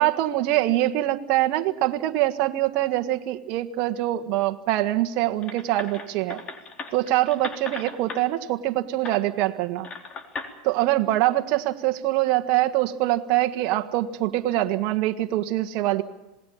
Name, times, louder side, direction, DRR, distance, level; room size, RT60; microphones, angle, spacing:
voice 1, 0.0-6.4 6.9-9.9 10.6-16.0, right 15 dB, 55° right, 6 dB, 1.6 m, -24 dB
sound 1, 5.4-8.2 9.0-9.2 9.8-10.5, left 4 dB, 35° left, 3.7 m, -37 dB
27.5 x 19.5 x 7.2 m, 0.97 s
hypercardioid pair, 95°, 3 cm